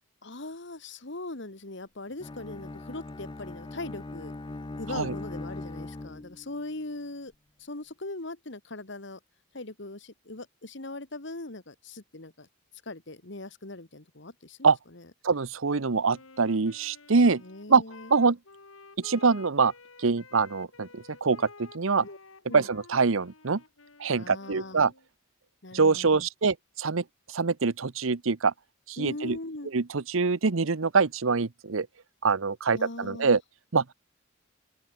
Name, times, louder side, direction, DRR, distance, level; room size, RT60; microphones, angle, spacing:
voice 1, 0.2-4.3 4.8-7.3 7.6-9.2 9.5-12.5 12.9-15.0 17.4-18.1 22.0-22.2 22.5-22.7 24.2-24.8 25.6-26.3 29.0-29.7 32.7-33.4, left 2 dB, 60° left, 1.9 m, -40 dB
Bowed string instrument, 2.2-6.6, left 2 dB, 20° left, 0.5 m, -40 dB
voice 2, 15.2-17.4 17.7-17.8 18.1-18.4 19.0-19.7 20.0-22.1 22.5-23.6 24.0-24.9 25.7-28.5 28.9-29.4 29.7-31.9 32.2-33.4 33.7-33.9, right 4 dB, 75° right, 0.8 m, -24 dB
Wind instrument woodwind instrument, 16.1-25.1, left 3 dB, 85° left, 2.8 m, -52 dB
open air
head